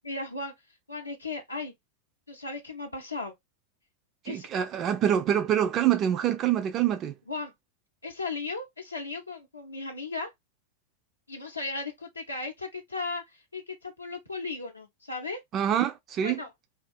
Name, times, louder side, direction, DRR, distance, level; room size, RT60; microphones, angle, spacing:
voice 1, 0.0-1.7 2.3-3.3 4.2-4.5 7.3-7.5 8.0-10.3 11.3-15.4 16.2-16.5, left 3 dB, 80° left, 0.5 m, -36 dB
voice 2, 4.2-7.1 15.5-16.4, right 10 dB, 30° right, 0.3 m, -25 dB
2.4 x 2.3 x 2.4 m
figure-of-eight pair, 90°, 0 cm